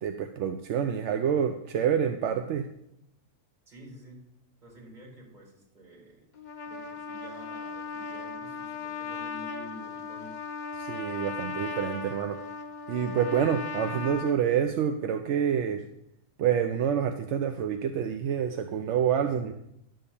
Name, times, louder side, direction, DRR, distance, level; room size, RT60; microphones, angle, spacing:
voice 1, 0.0-2.6 10.8-12.4 12.9-15.8 16.4-19.5, right 8 dB, 65° right, 7 dB, 0.8 m, -27 dB
voice 2, 3.7-4.3 4.6-6.3 6.6-10.4, equal, 30° right, -4 dB, 4.4 m, -49 dB
Trumpet, 6.3-14.4, left 4 dB, 45° left, 0.6 m, -37 dB
11.0 x 3.9 x 6.9 m, 0.78 s
omnidirectional pair, 1.5 m